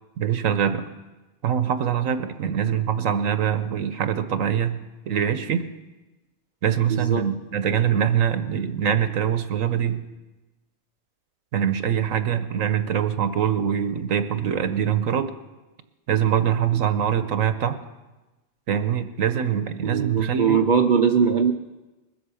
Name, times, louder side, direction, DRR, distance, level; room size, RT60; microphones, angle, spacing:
voice 1, 0.2-0.8 1.4-4.8 5.1-5.7 6.6-10.0 11.5-15.3 16.1-17.8 18.7-20.6, right 8 dB, 75° right, 10 dB, 1.2 m, -23 dB
voice 2, 6.9-7.3 16.7-16.8 19.8-21.5, right 6 dB, 45° right, 5 dB, 0.7 m, -21 dB
21.0 x 8.2 x 7.0 m, 1.1 s
omnidirectional pair, 1.4 m